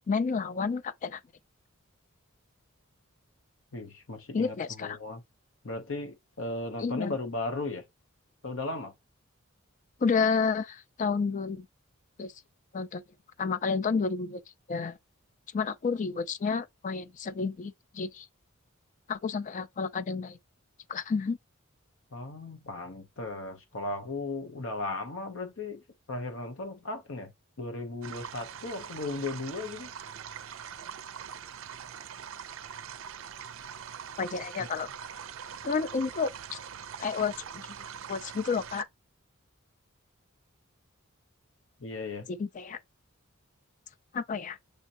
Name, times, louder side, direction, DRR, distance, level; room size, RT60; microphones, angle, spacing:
voice 1, 0.1-1.2 4.3-5.0 6.8-7.2 10.0-11.7 12.2-12.3 12.7-13.0 13.4-14.4 14.7-15.0 15.5-18.3 19.1-20.4 20.9-21.4 34.2-34.9 35.6-36.6 37.0-37.7 38.1-38.9 42.3-42.8 44.1-44.6, left 5 dB, 35° left, 0.4 m, -30 dB
voice 2, 3.7-5.2 5.6-7.8 8.4-8.9 22.1-27.3 27.6-29.9 34.6-34.7 41.8-42.3, left 2 dB, 65° left, 0.9 m, -36 dB
sound 1, 28.0-38.8, right 8 dB, 65° right, 0.4 m, -43 dB
6.5 x 2.9 x 2.6 m
head